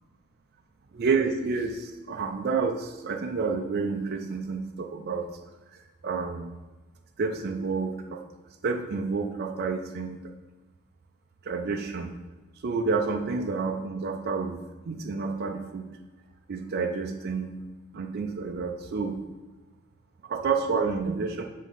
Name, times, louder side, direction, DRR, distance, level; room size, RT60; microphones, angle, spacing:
voice 1, 0.9-5.3 5.7-6.5 7.2-8.2 8.6-10.3 11.4-12.1 12.6-15.9 16.5-17.5 17.9-19.2 20.2-21.4, right 4 dB, 50° right, 4 dB, 0.4 m, -29 dB
7.4 x 3.6 x 5.3 m, 1.2 s
head